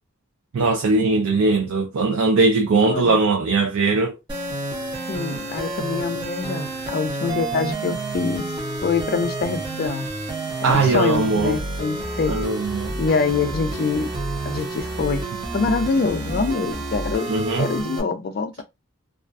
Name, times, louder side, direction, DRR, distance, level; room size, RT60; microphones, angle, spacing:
voice 1, 0.5-4.1 10.6-11.6 12.3-12.9 17.3-17.7, right 3 dB, 85° right, 0.4 m, -20 dB
voice 2, 2.8-3.2 5.1-8.5 8.8-10.1 10.6-12.3 13.0-14.1 14.4-15.2 15.5-17.3 17.6-18.6, left 4 dB, 45° left, 0.4 m, -25 dB
sound 1, 4.3-18.0, right 2 dB, 20° right, 0.7 m, -29 dB
2.3 x 2.2 x 2.4 m
head